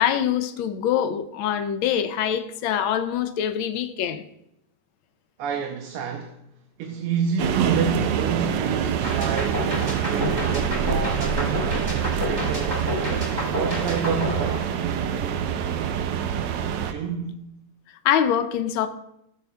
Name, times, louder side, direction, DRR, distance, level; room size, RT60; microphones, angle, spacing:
voice 1, 0.0-4.2 18.0-18.9, left 9 dB, 75° left, 1.3 m, -24 dB
voice 2, 5.4-6.4 6.8-9.7 10.1-12.9 13.5-15.5 16.9-17.5, right 6 dB, 90° right, 1.7 m, -29 dB
sound 1, 7.4-16.9, right 8 dB, 75° right, 1.0 m, -26 dB
sound 2, 9.0-15.2, left 1 dB, 15° right, 1.7 m, -30 dB
16.5 x 7.0 x 2.3 m
omnidirectional pair, 2.4 m